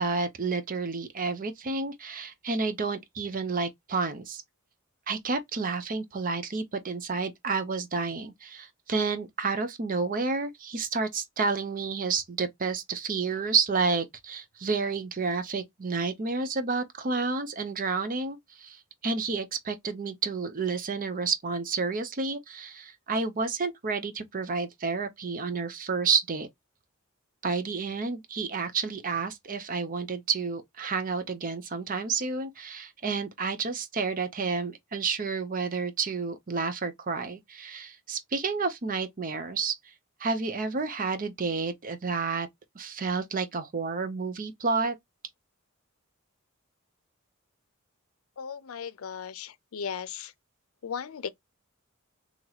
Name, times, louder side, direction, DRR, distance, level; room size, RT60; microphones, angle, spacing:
voice 1, 0.0-4.4 5.1-26.5 27.4-39.8 40.2-42.5 42.7-44.9, right 4 dB, 40° right, 0.6 m, -30 dB
voice 2, 48.4-50.3 50.8-51.3, left 7 dB, 80° left, 0.5 m, -36 dB
2.9 x 2.9 x 3.9 m
head